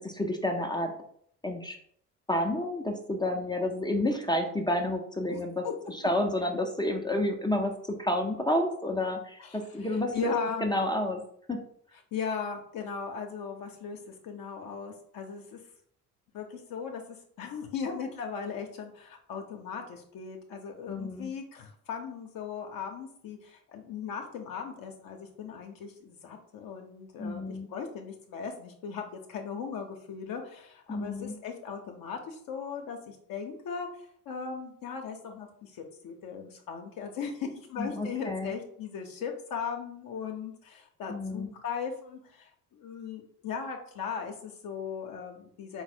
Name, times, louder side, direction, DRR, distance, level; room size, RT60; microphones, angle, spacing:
voice 1, 0.0-0.9 1.4-1.8 2.3-10.3 10.6-11.2 11.5-11.6 20.9-21.3 27.2-27.7 30.9-31.3 37.8-38.5 41.1-41.5, left 1 dB, 10° left, 3 dB, 0.5 m, -30 dB
voice 2, 5.3-5.7 9.4-9.9 10.1-10.6 12.1-15.6 16.3-17.0 17.4-33.9 34.3-45.8, left 6 dB, 50° left, 3 dB, 0.7 m, -38 dB
3.9 x 2.1 x 4.2 m, 0.65 s
figure-of-eight pair, 50°, 46 cm